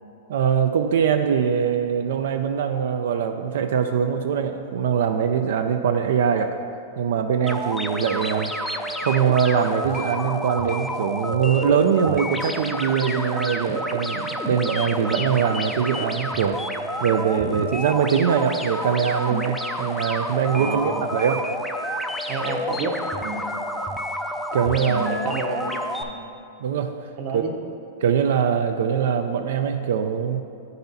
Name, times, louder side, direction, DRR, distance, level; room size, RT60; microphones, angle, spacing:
voice 1, 0.3-6.6 7.0-8.5 9.0-16.6 17.0-21.4 24.5-25.2 26.6-27.4 28.0-30.4, right 7 dB, 70° right, 6 dB, 0.3 m, -22 dB
sound 1, 7.5-26.0, equal, 5° left, 0.4 m, -29 dB
voice 2, 20.5-21.1 22.3-23.5 24.7-26.2 27.2-27.5, right 3 dB, 50° right, 1 dB, 0.9 m, -30 dB
9.4 x 4.0 x 4.0 m, 2.6 s
hypercardioid pair, 140°, 0 cm